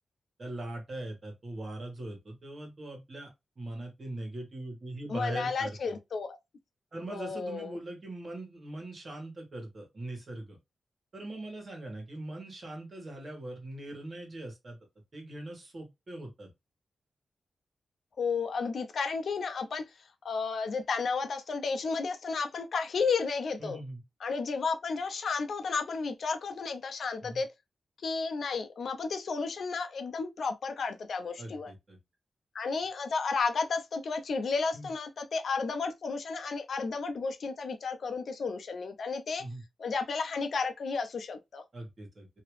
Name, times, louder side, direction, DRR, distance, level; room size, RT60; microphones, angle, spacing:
voice 1, 0.4-3.3 3.5-5.9 6.9-10.6 11.1-14.8 15.1-16.5 23.6-24.0 27.2-27.4 31.4-32.0 34.7-34.9 39.4-39.6 41.7-42.3, right 1 dB, 45° right, 1.7 m, -41 dB
voice 2, 5.1-6.4 7.1-7.8 18.2-19.8 20.2-23.8 24.2-27.5 28.0-31.7 32.5-39.5 39.8-41.6, left 4 dB, 70° left, 0.6 m, -32 dB
2.9 x 2.8 x 3.2 m
wide cardioid pair, 120°, 0 cm